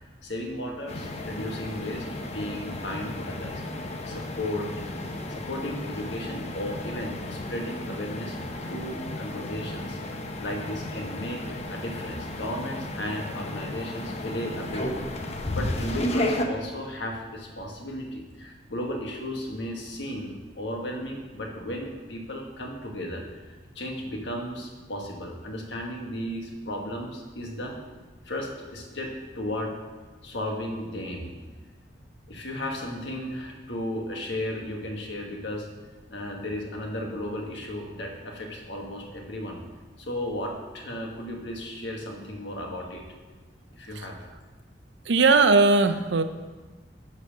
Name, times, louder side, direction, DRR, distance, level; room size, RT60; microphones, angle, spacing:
voice 1, 0.2-3.6 4.0-4.8 5.3-10.0 10.4-15.0 15.5-27.8 28.2-29.7 30.2-31.4 32.3-35.7 36.1-39.6 40.0-43.0 43.7-44.2, left 1 dB, 80° left, 1 dB, 1.5 m, -35 dB
sound 1, 0.9-16.4, left 1 dB, 35° left, 0.8 m, -33 dB
voice 2, 45.1-46.2, right 3 dB, 80° right, 10 dB, 0.6 m, -18 dB
10.5 x 4.2 x 6.5 m, 1.3 s
head